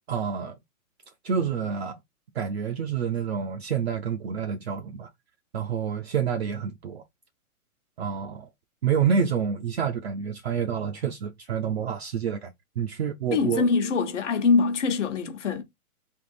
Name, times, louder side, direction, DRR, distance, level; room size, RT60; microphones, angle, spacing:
voice 1, 0.1-0.6 1.2-2.0 2.3-5.1 5.5-7.0 8.0-8.5 8.8-12.5 12.8-13.6, right 7 dB, 45° right, 0.5 m, -28 dB
voice 2, 13.3-15.6, left 4 dB, 55° left, 1.0 m, -23 dB
3.5 x 2.8 x 4.1 m
hypercardioid pair, 160°, 45 cm